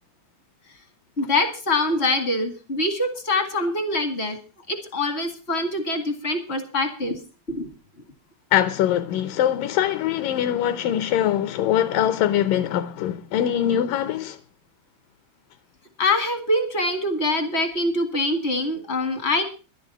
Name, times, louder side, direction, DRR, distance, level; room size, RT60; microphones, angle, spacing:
voice 1, 1.2-4.4 4.7-7.2 7.5-7.7 16.0-19.4, left 2 dB, 45° left, 0.8 m, -24 dB
voice 2, 8.5-14.4, left 11 dB, 75° left, 2.3 m, -22 dB
12.0 x 11.5 x 5.4 m
omnidirectional pair, 4.3 m